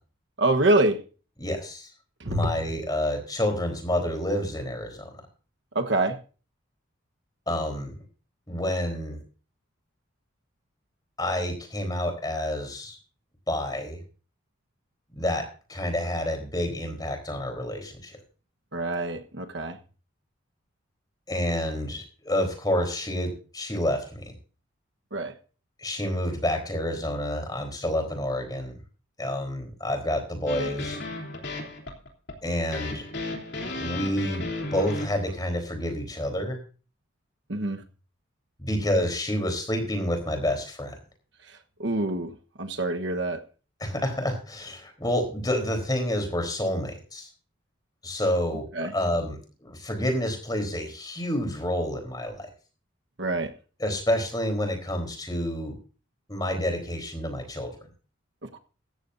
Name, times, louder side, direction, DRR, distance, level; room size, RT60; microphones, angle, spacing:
voice 1, 0.4-1.0 2.2-2.5 5.7-6.2 18.7-19.8 25.1-25.3 37.5-37.8 41.8-42.3 42.6-43.4 48.7-48.9 53.2-53.5 58.5-58.6, right 2 dB, 60° right, 1.2 m, -25 dB
voice 2, 1.4-1.9 2.3-5.1 7.5-7.9 8.5-9.2 11.2-13.0 13.5-14.0 15.1-18.2 21.3-24.3 25.8-28.8 29.2-31.0 32.4-33.1 33.8-36.6 38.6-41.0 43.8-47.3 48.0-52.5 53.8-55.8 56.3-57.7, left 1 dB, 20° left, 3.9 m, -29 dB
sound 1, 30.5-35.3, left 2 dB, 55° left, 3.3 m, -34 dB
16.5 x 14.0 x 2.7 m
head